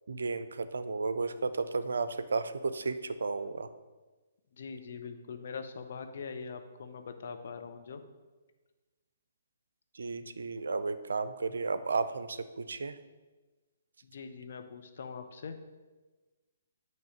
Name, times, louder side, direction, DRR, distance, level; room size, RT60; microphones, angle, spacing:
voice 1, 0.1-3.7 9.9-13.0, right 4 dB, 70° right, 12 dB, 0.5 m, -33 dB
voice 2, 4.5-8.0 14.0-15.6, left 5 dB, 60° left, 6 dB, 0.8 m, -42 dB
8.8 x 3.1 x 6.5 m, 1.2 s
figure-of-eight pair, 130°, 0 cm